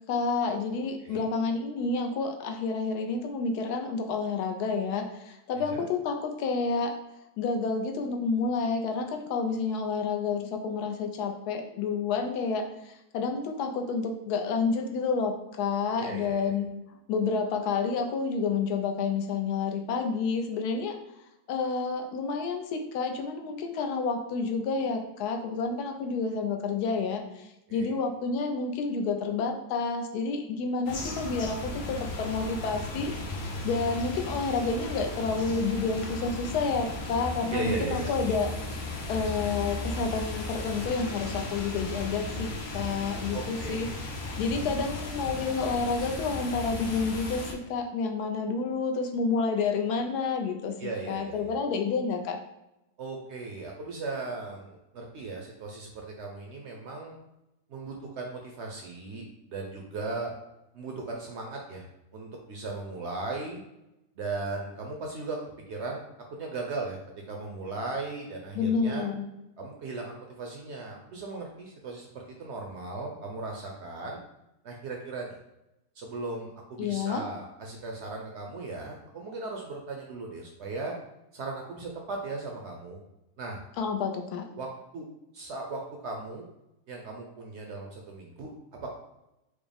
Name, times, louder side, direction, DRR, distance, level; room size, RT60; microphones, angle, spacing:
voice 1, 0.1-6.9 7.4-16.7 17.1-21.0 21.5-43.9 44.4-50.7 51.1-52.4 68.5-69.3 76.8-77.2 83.8-84.4, left 4 dB, 85° left, 4 dB, 1.1 m, -29 dB
voice 2, 5.6-5.9 16.0-16.6 27.7-27.9 37.5-38.1 43.3-43.9 50.8-51.6 53.0-57.2 57.7-60.3 60.7-61.8 62.1-63.6 64.2-65.4 65.7-67.0 67.3-69.1 69.6-74.2 74.6-75.4 76.0-80.9 81.3-83.0 83.4-83.6 84.6-85.1 85.3-86.5 86.9-88.9, right 3 dB, 70° right, 1 dB, 0.6 m, -37 dB
sound 1, 30.9-47.5, left 2 dB, 60° left, 0.7 m, -36 dB
4.6 x 2.1 x 3.3 m, 0.89 s
omnidirectional pair, 1.6 m